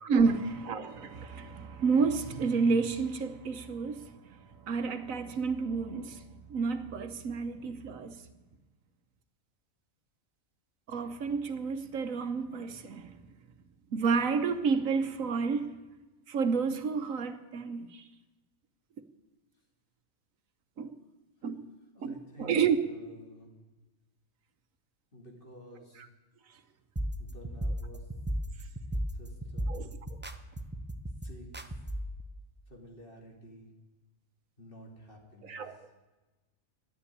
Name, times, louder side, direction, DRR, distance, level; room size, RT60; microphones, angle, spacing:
voice 1, 0.0-8.2 10.9-13.2 13.9-15.8 16.3-18.0 20.8-21.0 21.4-21.7 22.0-22.8 29.7-29.9 35.4-35.8, right 5 dB, 70° right, 1.3 m, -30 dB
voice 2, 21.9-23.5 25.1-26.0 27.2-28.1 29.1-29.9 31.2-31.7 32.7-33.7 34.6-35.6, equal, 40° left, 3.0 m, -51 dB
sound 1, 27.0-32.2, equal, 15° right, 0.4 m, -36 dB
12.0 x 10.0 x 9.8 m
omnidirectional pair, 1.4 m